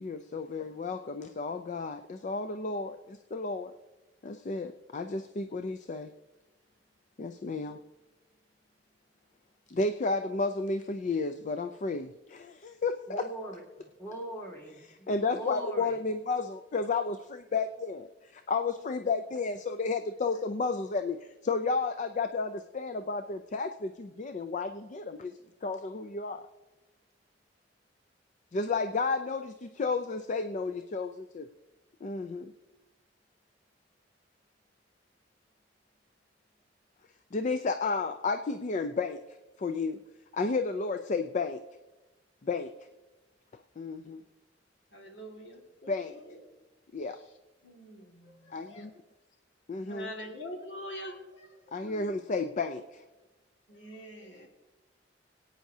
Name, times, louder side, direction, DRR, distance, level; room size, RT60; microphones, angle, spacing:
voice 1, 0.0-3.7 4.2-6.1 7.2-7.8 9.7-13.3 15.1-18.1 18.5-25.3 25.6-26.4 28.5-31.5 32.0-32.5 37.3-40.0 40.3-41.6 42.4-42.7 43.8-44.2 45.9-46.2 46.9-47.2 48.5-48.7 49.7-50.1 51.7-53.0, left 4 dB, 40° left, 8 dB, 0.4 m, -32 dB
voice 2, 13.1-16.0, equal, 15° left, -2 dB, 2.5 m, -41 dB
voice 3, 44.9-46.4 47.6-48.8 49.8-52.1 53.7-54.5, equal, 75° left, 0 dB, 2.0 m, -45 dB
26.0 x 9.1 x 2.8 m, 1.1 s
head